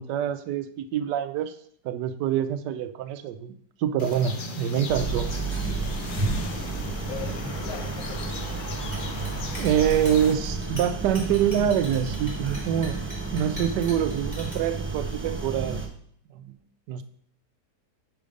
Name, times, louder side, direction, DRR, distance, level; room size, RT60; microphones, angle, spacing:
voice 1, 0.0-1.5 1.8-3.5 3.8-5.3 9.6-13.0 13.3-15.8 16.3-16.5 16.9-17.0, right 9 dB, 80° right, 11 dB, 1.2 m, -25 dB
sound 1, 4.0-10.3, left 3 dB, 80° left, 0.4 m, -38 dB
sound 2, 4.9-15.9, right 3 dB, 20° right, 0.3 m, -31 dB
voice 2, 6.2-8.3, left 5 dB, 60° left, 3 dB, 1.4 m, -40 dB
Chink clink, 8.8-14.5, equal, 10° left, 3.1 m, -42 dB
5.7 x 5.0 x 5.2 m, 0.63 s
omnidirectional pair, 1.8 m